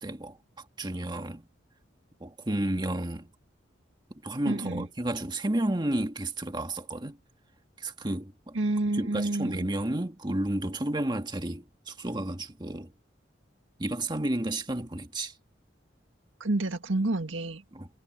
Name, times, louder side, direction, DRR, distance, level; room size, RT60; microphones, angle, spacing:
voice 1, 0.0-1.5 2.2-3.3 4.2-7.2 7.8-8.6 8.9-12.9 13.8-15.3 17.7-17.9, right 1 dB, 25° right, 1.8 m, -32 dB
voice 2, 4.5-4.9 8.5-9.7 16.4-17.6, right 2 dB, 90° right, 1.9 m, -29 dB
head